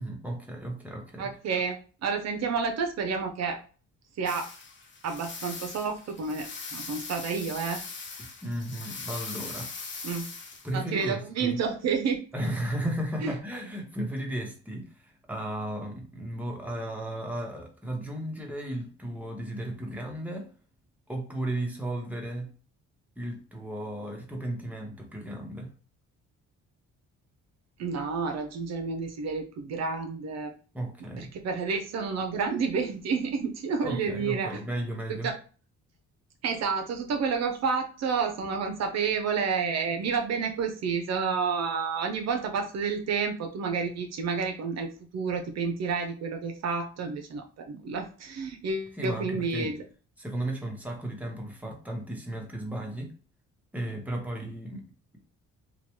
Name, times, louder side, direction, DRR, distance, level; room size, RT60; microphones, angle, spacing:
voice 1, 0.0-1.3 8.4-10.2 10.6-11.6 12.3-20.5 21.1-22.5 23.2-25.7 30.7-31.3 33.8-35.3 48.9-49.7 50.2-53.1 53.7-54.8, right 1 dB, 5° right, 0.9 m, -35 dB
voice 2, 1.2-3.6 4.2-4.5 5.0-7.8 10.0-10.3 10.7-12.2 13.2-13.3 27.8-30.5 31.2-34.6 35.1-35.3 36.4-49.8, right 5 dB, 60° right, 0.5 m, -30 dB
sound 1, 4.3-11.0, left 4 dB, 40° left, 0.6 m, -40 dB
2.9 x 2.2 x 2.9 m
cardioid pair, 90°, 30 cm